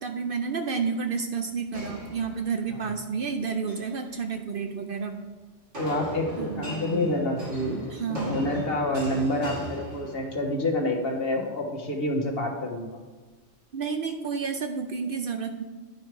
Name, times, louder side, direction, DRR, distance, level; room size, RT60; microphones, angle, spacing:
voice 1, 0.0-5.2 6.4-6.8 7.9-8.4 13.7-15.6, right 5 dB, 55° right, 6 dB, 0.7 m, -30 dB
sound 1, 1.7-2.8 3.5-4.0 5.7-10.6, equal, 80° right, 2.9 m, -38 dB
voice 2, 5.8-12.9, left 1 dB, 55° left, 1 dB, 1.5 m, -28 dB
10.5 x 5.4 x 4.6 m, 1.3 s
omnidirectional pair, 1.2 m